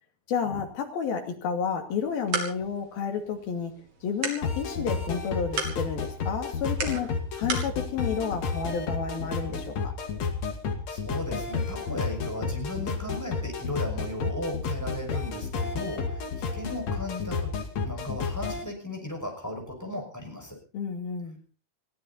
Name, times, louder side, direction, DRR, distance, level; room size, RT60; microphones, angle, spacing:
voice 1, 0.3-3.7 4.0-9.9 20.7-21.4, left 6 dB, 75° left, 4 dB, 4.3 m, -31 dB
sound 1, 1.9-7.7, right 4 dB, 45° right, 3.9 m, -37 dB
sound 2, 4.4-18.6, left 5 dB, 50° left, 3.2 m, -31 dB
voice 2, 10.9-20.6, left 1 dB, 5° left, 2 dB, 5.6 m, -36 dB
21.5 x 15.5 x 4.2 m, 0.37 s
omnidirectional pair, 4.3 m